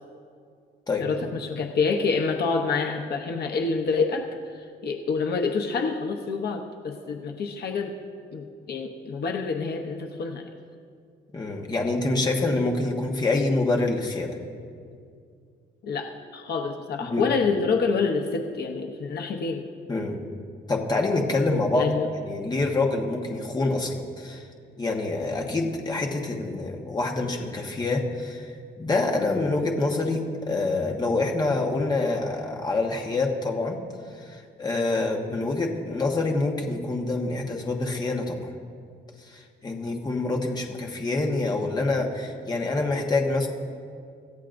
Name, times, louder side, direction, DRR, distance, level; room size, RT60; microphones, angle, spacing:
voice 1, 1.0-7.9 8.3-10.5 15.8-19.7 21.7-22.1, left 4 dB, 55° left, 3 dB, 0.9 m, -27 dB
voice 2, 11.3-14.3 17.0-17.2 19.9-20.2 20.7-21.9 22.2-24.4 24.8-33.8 34.1-38.5 39.3-43.5, left 2 dB, 20° left, 1 dB, 1.3 m, -26 dB
26.5 x 14.5 x 2.6 m, 2.2 s
wide cardioid pair, 170°, 19 cm